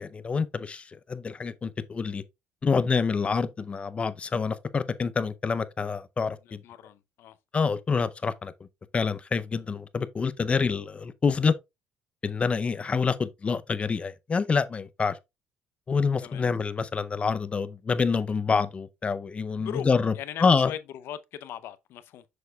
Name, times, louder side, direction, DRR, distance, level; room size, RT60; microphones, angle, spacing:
voice 1, 0.0-2.2 2.6-6.6 7.5-8.5 8.9-11.5 12.2-15.2 15.9-20.1 20.4-20.7, left 5 dB, 30° left, 0.6 m, -27 dB
voice 2, 6.6-7.3 16.2-16.4 19.6-19.9 20.1-22.2, left 10 dB, 70° left, 0.7 m, -39 dB
6.8 x 6.3 x 2.3 m
cardioid pair, 95°, 4 cm